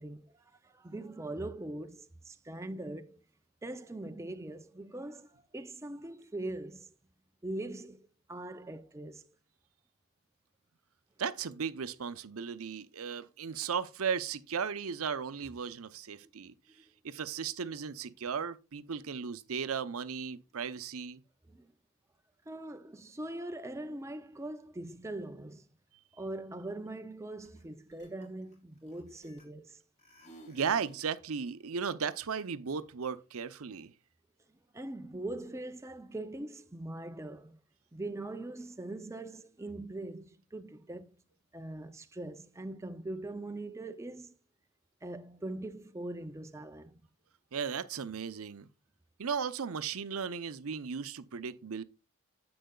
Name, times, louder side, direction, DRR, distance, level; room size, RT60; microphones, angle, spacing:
voice 1, 0.0-3.2 3.6-6.9 7.4-9.3 21.5-21.7 22.5-25.7 26.2-29.8 34.7-37.6 37.9-41.2 41.5-44.4 45.0-47.0, right 2 dB, 15° right, 0.4 m, -42 dB
voice 2, 11.2-16.5 17.0-21.2 30.5-33.9 47.5-48.7 49.2-51.8, right 6 dB, 75° right, 0.6 m, -36 dB
sound 1, 27.4-27.6 27.9-29.7 30.0-31.1, right 1 dB, 35° left, 3.3 m, -55 dB
10.0 x 7.8 x 2.3 m
head